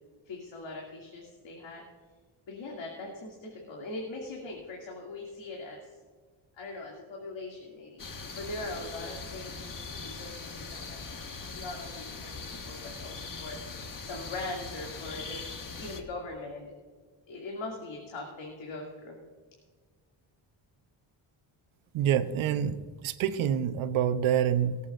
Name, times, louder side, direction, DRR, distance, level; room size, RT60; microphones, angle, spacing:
voice 1, 0.3-1.8 2.5-5.9 6.6-8.0 8.3-11.2 11.5-15.4 15.8-16.7 17.3-19.2, left 2 dB, 70° left, -1 dB, 2.6 m, -41 dB
sound 1, 8.0-16.0, left 4 dB, 45° left, 1.6 m, -41 dB
voice 2, 21.9-22.8 23.0-24.8, right 9 dB, 90° right, 11 dB, 0.9 m, -26 dB
23.5 x 8.4 x 2.6 m, 1.5 s
cardioid pair, 90°, 47 cm